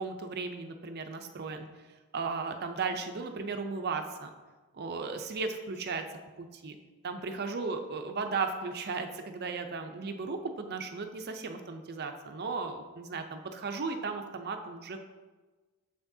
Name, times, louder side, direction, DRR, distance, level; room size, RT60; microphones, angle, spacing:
voice 1, 0.0-1.7 2.1-4.3 4.7-6.0 6.4-6.8 7.0-15.0, right 4 dB, 45° right, 6 dB, 0.5 m, -35 dB
7.4 x 5.9 x 2.7 m, 1.3 s
head